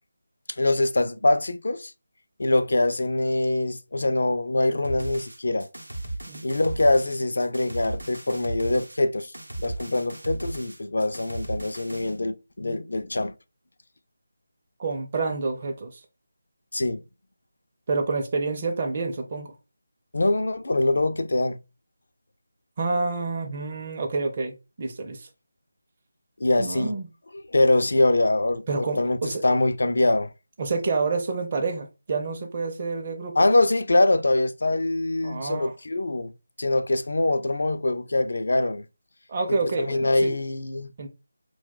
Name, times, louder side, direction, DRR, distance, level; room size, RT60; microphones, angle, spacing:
voice 1, 0.5-1.9 2.4-5.7 6.4-9.3 9.6-13.3 16.7-17.0 20.1-21.6 26.4-27.0 27.5-30.3 33.4-36.3 36.6-38.9 39.5-40.9, left 2 dB, 65° left, 0.4 m, -23 dB
sound 1, 4.8-12.2, right 2 dB, 85° right, 0.7 m, -36 dB
voice 2, 14.8-16.0 17.9-19.5 22.8-25.3 26.6-27.1 28.7-29.4 30.6-33.4 35.2-35.7 39.3-40.3 41.0-41.1, right 3 dB, 35° right, 0.5 m, -28 dB
2.3 x 2.2 x 3.7 m
figure-of-eight pair, 160°, 0 cm